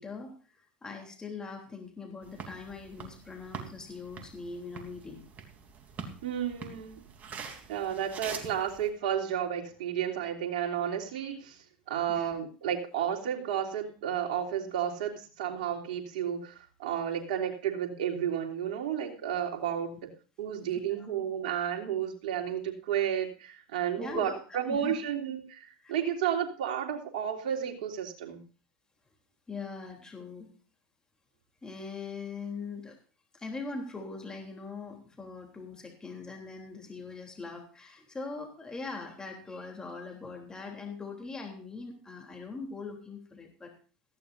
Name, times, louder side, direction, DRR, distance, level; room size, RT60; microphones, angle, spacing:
voice 1, 0.0-5.2 12.1-12.4 21.0-21.1 24.0-24.4 24.7-25.0 25.8-25.9 29.5-30.5 31.6-33.0 33.3-43.7, left 4 dB, 15° left, 2 dB, 3.3 m, -41 dB
sound 1, 2.2-8.9, right 6 dB, 35° right, 3.2 m, -45 dB
voice 2, 6.2-7.0 7.7-11.6 11.9-20.0 20.4-28.4, right 9 dB, 70° right, 0 dB, 3.2 m, -32 dB
18.0 x 15.0 x 2.6 m, 0.37 s
hypercardioid pair, 90°, 5 cm